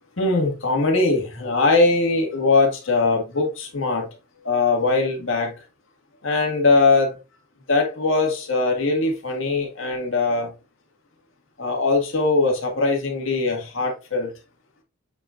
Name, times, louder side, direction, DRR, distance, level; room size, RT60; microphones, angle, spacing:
voice 1, 0.2-4.1 4.4-5.5 6.2-7.1 7.7-10.5 11.6-14.3, left 3 dB, 60° left, 1.9 m, -21 dB
7.6 x 5.0 x 2.5 m
head